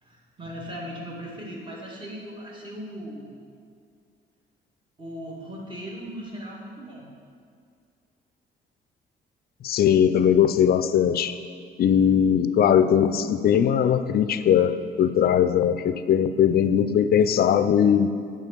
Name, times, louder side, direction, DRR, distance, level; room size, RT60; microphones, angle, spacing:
voice 1, 0.0-3.3 5.0-7.1, equal, 25° right, -3 dB, 2.0 m, -38 dB
voice 2, 9.6-11.4 11.8-18.1, left 8 dB, 50° left, 12 dB, 0.4 m, -20 dB
8.4 x 3.8 x 6.6 m, 2.3 s
cardioid pair, 90°, 20 cm